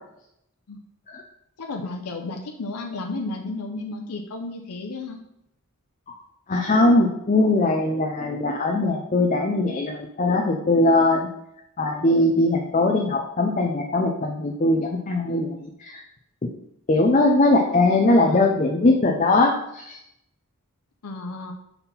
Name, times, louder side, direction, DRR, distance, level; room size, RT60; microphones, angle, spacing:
voice 1, 1.6-5.2 18.0-18.5 21.0-21.5, left 3 dB, 90° left, 3 dB, 0.6 m, -33 dB
voice 2, 6.5-11.3 11.8-16.0 16.9-20.0, left 2 dB, 35° left, 1 dB, 0.5 m, -20 dB
5.6 x 4.2 x 4.0 m, 0.78 s
head